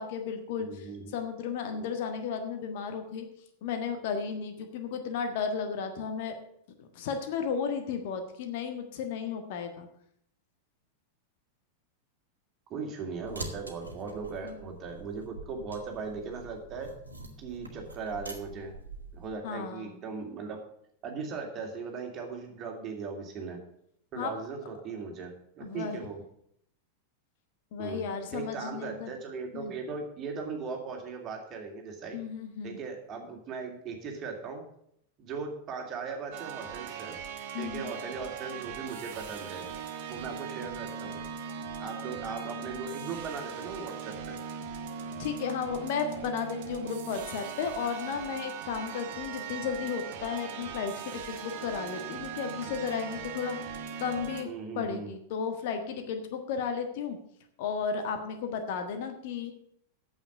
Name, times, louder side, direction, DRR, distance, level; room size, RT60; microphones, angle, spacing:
voice 1, 0.0-3.3 3.6-6.3 6.8-9.9 14.4-14.5 19.4-20.0 24.1-24.4 25.6-26.0 27.7-29.1 29.5-29.7 32.1-32.8 37.5-37.9 45.2-54.5 54.7-57.2 57.6-59.5, left 6 dB, 50° left, 6 dB, 1.5 m, -34 dB
voice 2, 0.6-1.1 1.7-1.9 12.7-16.9 17.4-18.8 19.1-20.6 21.0-23.6 24.1-26.2 27.8-28.1 28.3-32.2 32.6-34.6 35.2-37.1 37.6-39.6 40.1-41.2 41.8-44.4 54.4-55.1, right 5 dB, 30° right, 2 dB, 2.6 m, -38 dB
sound 1, 13.1-19.3, right 2 dB, 80° right, 1.5 m, -45 dB
sound 2, 36.3-54.4, right 7 dB, 50° right, 1.4 m, -39 dB
9.0 x 7.4 x 7.9 m, 0.71 s
figure-of-eight pair, 90°, 0 cm